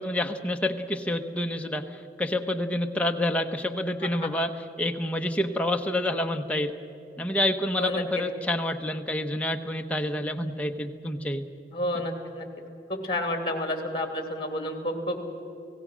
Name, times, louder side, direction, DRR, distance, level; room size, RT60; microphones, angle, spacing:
voice 1, 0.0-6.8 7.2-11.4, left 1 dB, 10° left, 4 dB, 1.0 m, -28 dB
voice 2, 11.7-12.5 12.9-15.2, left 1 dB, 30° left, 5 dB, 2.8 m, -30 dB
30.0 x 17.5 x 6.3 m, 2.8 s
head